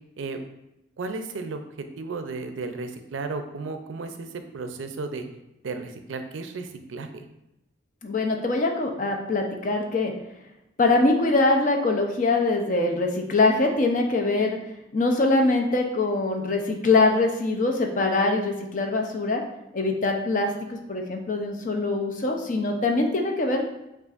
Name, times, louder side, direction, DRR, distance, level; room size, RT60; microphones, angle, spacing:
voice 1, 1.0-1.6 2.0-5.3 5.6-7.2, right 3 dB, 85° right, 7 dB, 0.4 m, -34 dB
voice 2, 8.0-10.1 10.8-14.6 14.9-19.4 19.7-23.7, left 2 dB, 40° left, 3 dB, 0.5 m, -23 dB
6.7 x 2.5 x 2.4 m, 0.90 s
head